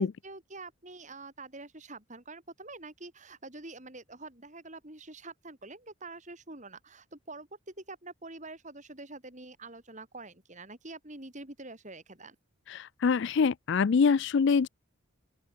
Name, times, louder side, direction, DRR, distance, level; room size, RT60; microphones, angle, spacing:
voice 1, 0.0-12.4, right 2 dB, 35° right, 3.8 m, -46 dB
voice 2, 12.7-14.7, left 5 dB, 55° left, 0.4 m, -25 dB
open air
head